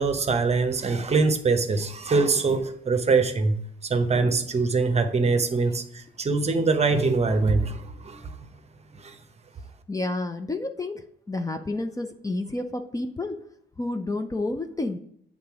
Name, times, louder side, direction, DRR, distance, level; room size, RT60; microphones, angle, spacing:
voice 1, 0.0-3.6 3.8-8.3 9.0-9.2, right 4 dB, 35° right, 0.8 m, -23 dB
voice 2, 9.9-13.4 13.8-15.0, left 2 dB, 15° left, 0.5 m, -30 dB
8.0 x 3.8 x 4.8 m
cardioid pair, 90°, 20 cm